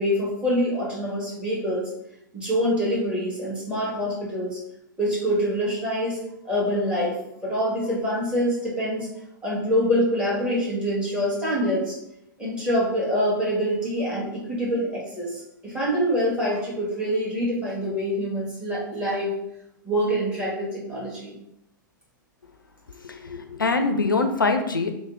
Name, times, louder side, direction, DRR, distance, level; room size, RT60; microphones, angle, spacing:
voice 1, 0.0-1.9 2.3-4.6 5.0-6.2 6.4-7.2 7.4-9.1 9.4-11.9 12.4-19.3 19.8-21.3, equal, 10° right, -8 dB, 1.4 m, -25 dB
voice 2, 23.1-24.9, left 3 dB, 80° left, 6 dB, 0.4 m, -23 dB
3.3 x 2.0 x 3.8 m, 0.81 s
figure-of-eight pair, 100°, 11 cm